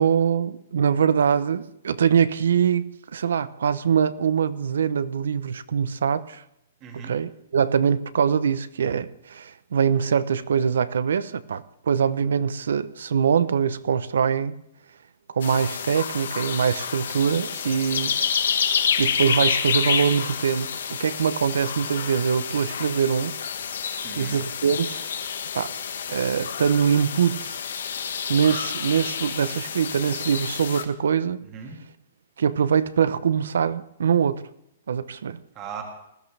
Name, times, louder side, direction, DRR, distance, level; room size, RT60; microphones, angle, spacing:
voice 1, 0.0-6.4 7.0-14.6 15.3-18.1 19.0-23.3 24.1-25.0 25.5-25.7 26.1-27.6 28.3-31.5 32.4-34.5 34.9-35.4, right 7 dB, 85° right, 0.7 m, -23 dB
voice 2, 6.8-7.1 17.6-18.3 24.0-24.4 31.5-31.8 35.5-35.8, right 7 dB, 20° right, 1.6 m, -39 dB
sound 1, 15.4-30.8, left 7 dB, 80° left, 1.5 m, -29 dB
19.5 x 13.0 x 3.4 m
hypercardioid pair, 180°, 0 cm